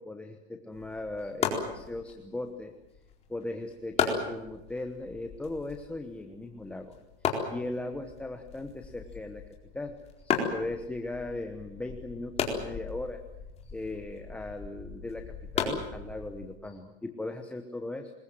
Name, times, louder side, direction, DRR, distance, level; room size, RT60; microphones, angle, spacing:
voice 1, 0.0-2.7 3.3-7.0 7.2-9.4 9.7-13.2 13.6-18.1, left 2 dB, 5° left, 5 dB, 1.0 m, -38 dB
sound 1, 0.7-16.6, left 6 dB, 20° left, 4.3 m, -36 dB
26.0 x 21.5 x 7.7 m, 0.96 s
supercardioid pair, 155°, 33 cm